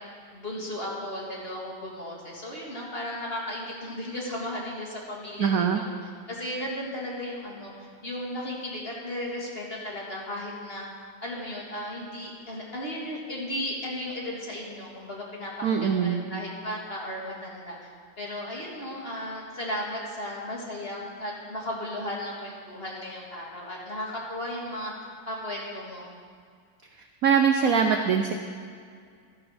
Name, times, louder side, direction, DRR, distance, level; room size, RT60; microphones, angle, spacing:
voice 1, 0.3-5.9 6.3-7.7 8.0-10.9 11.2-17.8 18.2-24.9 25.3-26.1, left 1 dB, 30° left, -3 dB, 2.1 m, -35 dB
voice 2, 5.4-5.8 15.6-16.2 27.2-28.3, right 6 dB, 65° right, 5 dB, 0.9 m, -22 dB
13.5 x 11.0 x 4.3 m, 2.1 s
omnidirectional pair, 2.1 m